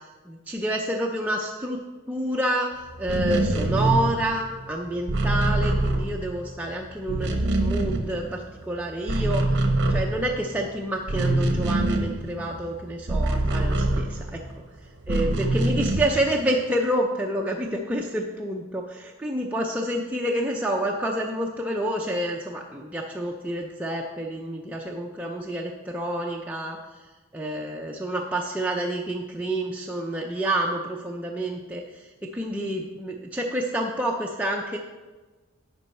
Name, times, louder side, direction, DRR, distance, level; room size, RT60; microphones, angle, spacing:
voice 1, 0.3-1.8 2.1-7.3 7.6-9.4 9.9-14.4 15.1-26.8 27.3-34.8, right 1 dB, 5° right, -1 dB, 0.4 m, -28 dB
sound 1, 3.0-6.6 6.9-8.6 8.9-14.5 15.0-16.3, right 2 dB, 55° right, 0.9 m, -25 dB
10.5 x 4.6 x 4.2 m, 1.3 s
head